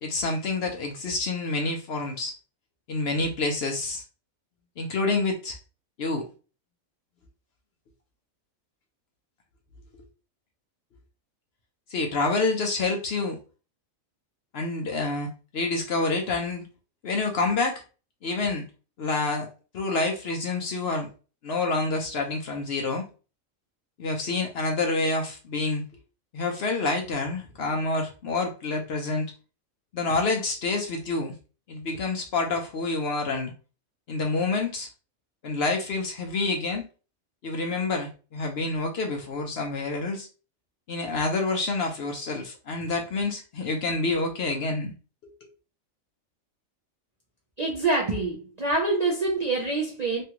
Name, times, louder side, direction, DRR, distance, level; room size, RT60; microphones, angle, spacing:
voice 1, 0.0-2.4 2.9-4.0 4.8-5.6 6.0-6.3 11.9-13.4 14.5-16.6 17.0-17.8 18.2-18.6 19.0-19.5 19.7-21.1 21.4-23.1 24.0-25.8 26.3-29.3 29.9-31.3 31.7-33.5 34.1-34.9 35.4-36.9 37.4-40.3 40.9-44.9 45.2-45.3, left 3 dB, 60° left, 0.8 m, -28 dB
voice 2, 47.6-50.2, right 3 dB, 50° right, 0.5 m, -26 dB
3.3 x 2.3 x 2.8 m
omnidirectional pair, 1.4 m